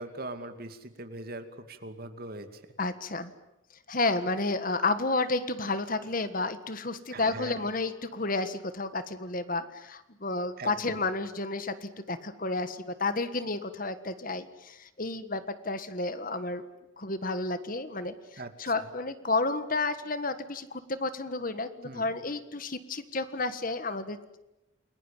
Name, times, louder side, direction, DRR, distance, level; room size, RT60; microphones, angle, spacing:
voice 1, 0.0-2.6 7.1-7.6 10.6-11.0 18.4-18.9 21.8-22.1, right 2 dB, 45° right, 8 dB, 2.5 m, -41 dB
voice 2, 2.8-3.3 3.9-16.6 17.0-24.2, left 3 dB, 40° left, 12 dB, 1.6 m, -31 dB
29.5 x 21.5 x 9.1 m, 0.91 s
head